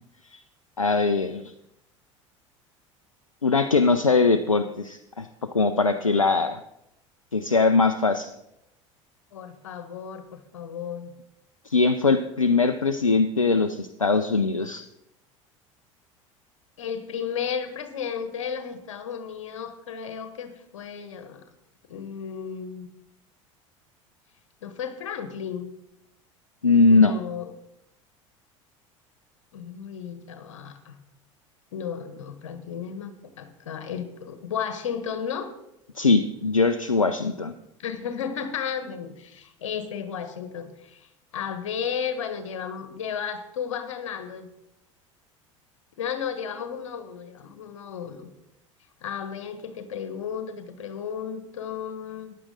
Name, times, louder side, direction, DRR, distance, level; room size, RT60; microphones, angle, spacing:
voice 1, 0.8-1.4 3.4-5.3 5.5-6.6 7.3-8.3 11.7-14.8 26.6-27.1 36.0-37.5, left 4 dB, 90° left, 9 dB, 0.5 m, -21 dB
voice 2, 9.3-11.1 16.8-21.4 21.9-22.9 24.6-25.7 26.9-27.5 29.5-31.0 31.7-35.5 37.8-44.5 46.0-48.3 49.0-52.4, left 7 dB, 70° left, 10 dB, 1.4 m, -34 dB
14.5 x 10.0 x 3.8 m, 0.82 s
figure-of-eight pair, 70°, 17 cm